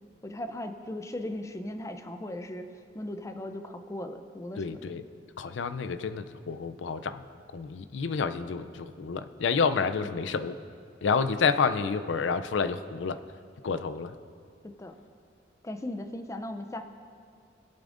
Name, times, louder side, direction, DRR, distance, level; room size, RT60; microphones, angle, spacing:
voice 1, 0.2-2.7 2.9-4.9 10.0-10.5 14.6-15.0 15.6-16.8, left 1 dB, 15° left, 8 dB, 0.5 m, -38 dB
voice 2, 4.6-5.0 5.4-7.2 7.5-10.6 11.0-13.2 13.6-14.1, left 5 dB, 80° left, 11 dB, 0.4 m, -29 dB
18.0 x 8.6 x 2.5 m, 2.3 s
head